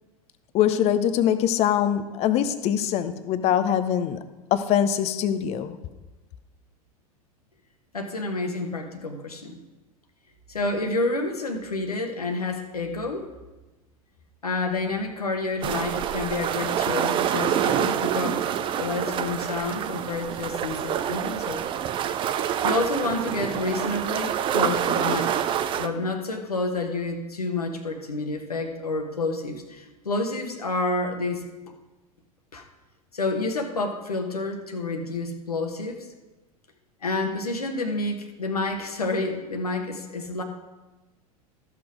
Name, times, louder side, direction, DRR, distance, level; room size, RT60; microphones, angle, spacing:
voice 1, 0.5-4.2 4.5-5.8, left 10 dB, 35° left, 11 dB, 0.7 m, -23 dB
voice 2, 7.9-9.6 10.5-13.3 14.4-18.5 18.7-21.6 22.6-25.4 25.8-31.5 32.5-32.7 33.1-36.1 37.0-40.4, left 2 dB, 80° left, 4 dB, 1.2 m, -29 dB
sound 1, 15.6-25.9, right 9 dB, 25° right, 0.5 m, -27 dB
13.5 x 6.0 x 4.8 m, 1.1 s
figure-of-eight pair, 85°, 19 cm